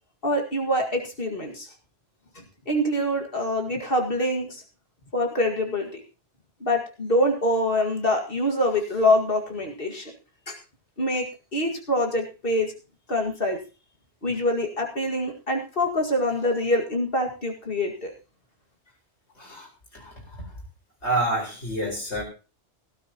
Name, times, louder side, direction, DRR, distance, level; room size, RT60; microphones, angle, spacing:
voice 1, 0.2-1.7 2.4-4.6 5.1-6.0 6.6-10.1 10.5-10.6 11.0-11.3 11.5-12.7 13.1-13.6 14.2-18.1, left 1 dB, 55° left, 3 dB, 2.2 m, -25 dB
voice 2, 19.4-19.7 19.9-20.5 21.0-22.2, right 1 dB, 80° left, 0 dB, 4.9 m, -28 dB
17.0 x 13.0 x 2.9 m, 0.33 s
omnidirectional pair, 1.2 m